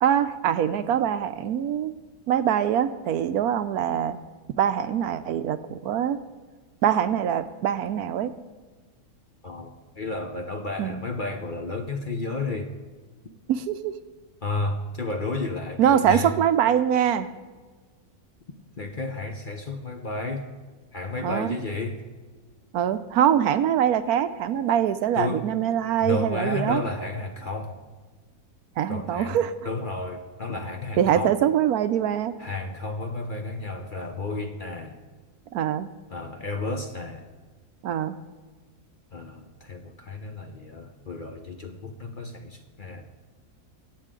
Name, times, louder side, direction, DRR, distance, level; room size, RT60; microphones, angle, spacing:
voice 1, 0.0-1.9 2.3-4.2 4.6-6.2 6.8-8.3 10.8-11.0 13.5-13.9 15.8-17.3 21.2-21.5 22.7-26.8 28.8-29.5 31.0-32.3 35.5-35.9 37.8-38.2, right 9 dB, 75° right, 12 dB, 1.1 m, -23 dB
voice 2, 9.4-12.7 14.4-16.3 18.8-20.5 20.9-22.0 25.1-25.5 26.0-27.8 28.9-29.4 29.6-31.4 32.4-35.0 36.1-37.2 39.1-43.1, left 3 dB, 40° left, 4 dB, 0.9 m, -32 dB
23.0 x 8.1 x 3.8 m, 1.4 s
omnidirectional pair, 1.7 m